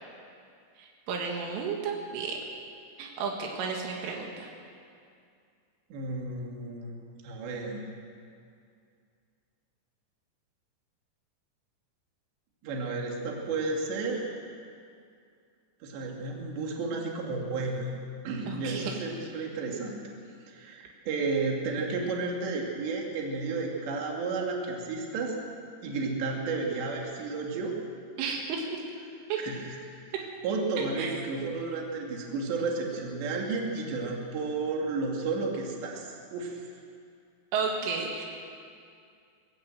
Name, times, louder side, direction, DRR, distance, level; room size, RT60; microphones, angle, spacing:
voice 1, 0.8-2.4 3.0-4.5 18.5-19.0 28.2-28.8 29.3-29.4 31.0-31.1 37.5-38.3, right 5 dB, 85° right, 0 dB, 4.3 m, -32 dB
voice 2, 5.9-6.9 7.2-7.8 12.6-14.3 15.8-17.9 18.2-20.0 20.5-25.4 25.8-27.7 29.4-29.8 30.4-36.6, right 3 dB, 65° right, 0 dB, 4.4 m, -32 dB
21.0 x 16.0 x 7.8 m, 2.3 s
omnidirectional pair, 5.5 m